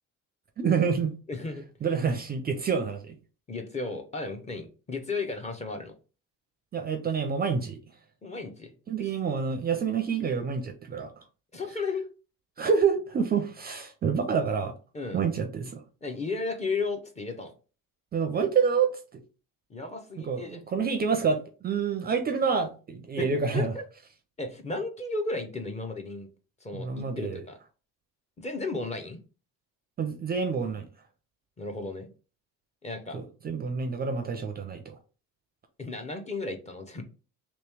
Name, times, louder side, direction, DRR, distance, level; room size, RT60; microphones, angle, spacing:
voice 1, 0.6-1.1 1.8-3.1 6.7-7.8 8.9-11.1 12.6-14.7 15.1-15.8 18.1-19.2 20.2-23.7 26.7-27.4 30.0-30.9 33.1-35.0, right 6 dB, 30° right, 0.4 m, -28 dB
voice 2, 1.3-1.6 3.5-5.9 8.2-8.7 11.5-12.0 14.9-15.2 16.0-17.5 19.7-20.6 23.2-23.3 23.5-23.8 24.4-26.3 26.6-27.6 28.4-29.2 31.6-32.1 32.8-33.2 35.8-37.0, left 3 dB, 20° left, 0.6 m, -34 dB
3.1 x 3.0 x 3.4 m
cardioid pair, 135°, 33 cm